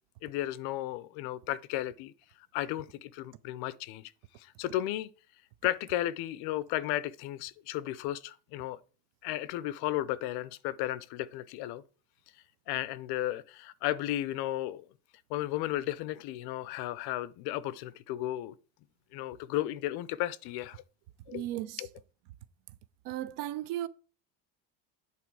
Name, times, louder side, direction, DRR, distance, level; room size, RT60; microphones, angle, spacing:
voice 1, 0.2-2.1 2.5-4.1 4.4-5.1 5.6-8.8 9.2-11.8 12.7-14.9 15.3-18.5 19.1-20.8 21.3-21.4 21.8-21.9, left 14 dB, 70° left, 0.6 m, -34 dB
voice 2, 21.3-21.9 23.0-23.9, right 13 dB, 90° right, 0.6 m, -35 dB
8.5 x 3.6 x 4.7 m
cardioid pair, 170°, 39 cm